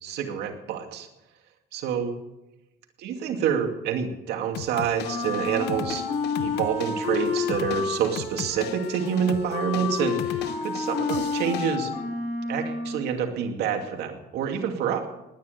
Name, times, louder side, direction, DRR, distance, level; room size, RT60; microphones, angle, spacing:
voice 1, 0.0-1.1 1.7-2.1 3.0-6.0 6.4-11.9 12.5-15.1, right 7 dB, 80° right, 5 dB, 2.5 m, -27 dB
sound 1, 4.5-11.8, left 11 dB, 85° left, 0.8 m, -38 dB
Wind instrument woodwind instrument, 5.0-13.1, left 4 dB, 40° left, 6.2 m, -30 dB
19.0 x 9.9 x 6.9 m, 0.94 s
cardioid pair, 110°, 17 cm